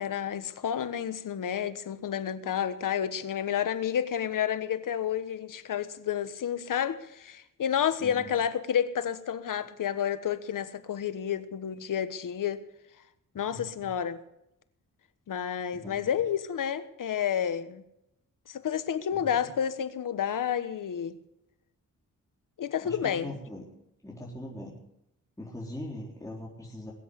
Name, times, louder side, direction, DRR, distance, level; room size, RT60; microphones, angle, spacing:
voice 1, 0.0-12.6 13.3-14.2 15.3-17.8 18.5-21.2 22.6-23.4, left 9 dB, 75° left, 1.3 m, -30 dB
voice 2, 13.5-13.9 15.7-16.1 19.2-19.3 22.8-23.6 24.0-24.8 25.4-26.9, left 1 dB, 10° left, 4.0 m, -41 dB
21.0 x 8.0 x 8.0 m
cardioid pair, 75°, 32 cm